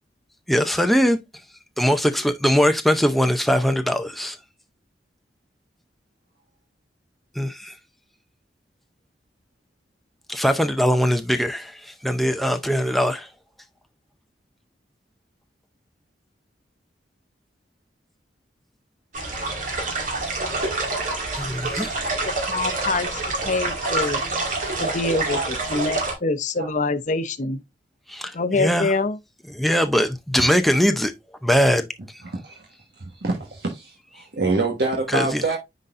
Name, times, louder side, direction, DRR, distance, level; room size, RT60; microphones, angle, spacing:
voice 1, 0.5-1.2 1.8-4.4 7.4-7.8 10.3-13.3 21.4-22.0 28.1-28.9 29.5-31.1 31.4-31.9 35.1-35.4, equal, ahead, 0.5 m, -21 dB
sound 1, 19.1-26.1, right 2 dB, 45° right, 2.1 m, -27 dB
voice 2, 22.5-24.2 24.8-25.4 25.7-27.6 28.3-29.2, left 3 dB, 45° left, 0.7 m, -25 dB
voice 3, 32.2-32.7 32.9-35.6, right 2 dB, 65° right, 1.4 m, -26 dB
9.6 x 4.0 x 2.5 m
head